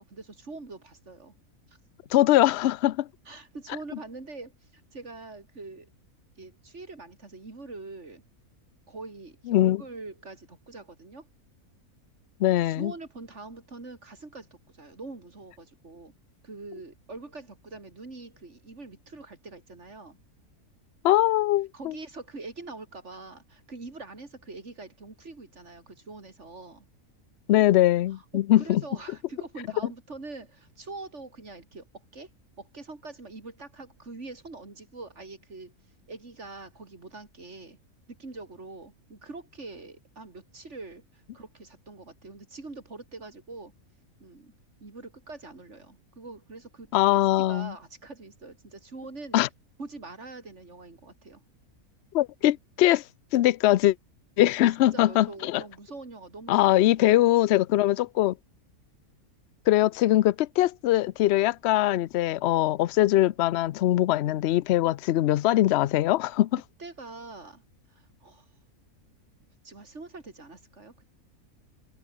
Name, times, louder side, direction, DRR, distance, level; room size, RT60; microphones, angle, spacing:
voice 1, 0.0-1.3 1.7-1.8 3.3-5.9 6.4-8.2 8.9-11.3 12.6-16.1 16.4-20.2 21.7-26.9 28.1-32.3 32.6-35.7 36.1-37.8 38.1-43.7 44.2-44.5 44.8-47.2 47.5-49.4 49.8-51.4 54.4-54.6 54.9-57.2 66.8-67.6 67.9-68.5 69.6-71.0, right 3 dB, 50° right, 3.7 m, -44 dB
voice 2, 2.1-3.1 9.5-9.8 12.4-12.9 21.0-21.9 27.5-28.8 46.9-47.7 49.3-49.5 52.1-53.0 53.3-53.9 54.4-55.6 56.5-58.3 59.7-66.5, left 14 dB, 65° left, 0.7 m, -22 dB
omnidirectional pair, 1.5 m